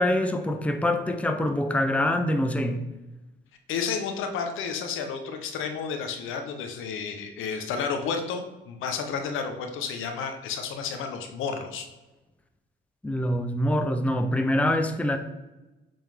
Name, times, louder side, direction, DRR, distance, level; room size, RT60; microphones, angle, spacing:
voice 1, 0.0-2.8 13.0-15.2, left 1 dB, 5° left, 6 dB, 0.6 m, -25 dB
voice 2, 3.7-11.9, left 6 dB, 85° left, 6 dB, 0.9 m, -31 dB
7.6 x 3.7 x 3.5 m, 1.1 s
cardioid pair, 90°, 20 cm